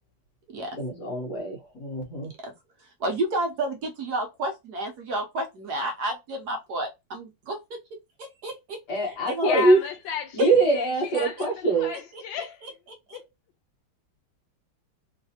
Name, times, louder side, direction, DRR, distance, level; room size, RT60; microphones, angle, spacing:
voice 1, 0.8-2.3 8.9-9.8 10.3-11.9, right 2 dB, 60° left, 1.9 m, -23 dB
voice 2, 3.0-7.6 8.2-8.8 9.3-9.7 10.4-10.5 11.1-11.5 12.4-12.7 13.1-13.2, right 1 dB, 65° right, 1.2 m, -30 dB
voice 3, 9.4-10.4 10.7-12.7 13.1-13.2, left 7 dB, 80° left, 1.4 m, -34 dB
3.9 x 2.6 x 2.8 m
omnidirectional pair, 2.1 m